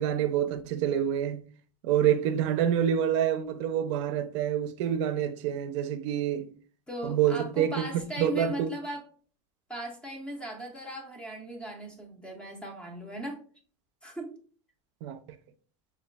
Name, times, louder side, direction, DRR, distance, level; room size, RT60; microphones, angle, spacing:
voice 1, 0.0-1.4 1.8-6.5 7.0-7.7 8.2-8.7 15.0-15.2, right 9 dB, 75° right, 0.4 m, -27 dB
voice 2, 6.9-9.0 9.7-13.4 14.0-14.4, right 1 dB, 5° left, 0.4 m, -38 dB
5.4 x 2.2 x 2.2 m
cardioid pair, 165°, 15 cm